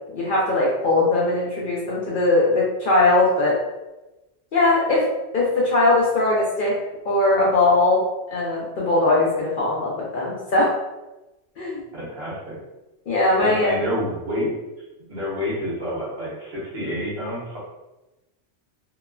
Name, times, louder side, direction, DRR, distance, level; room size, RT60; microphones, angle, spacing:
voice 1, 0.1-3.6 4.5-5.1 5.3-6.8 7.1-8.0 8.3-10.7 11.6-11.9 13.1-13.8, left 2 dB, 60° left, -5 dB, 0.6 m, -20 dB
voice 2, 11.9-12.6 13.4-14.5 15.1-17.6, equal, 60° right, -6 dB, 1.1 m, -28 dB
2.9 x 2.0 x 2.3 m, 1.0 s
omnidirectional pair, 1.2 m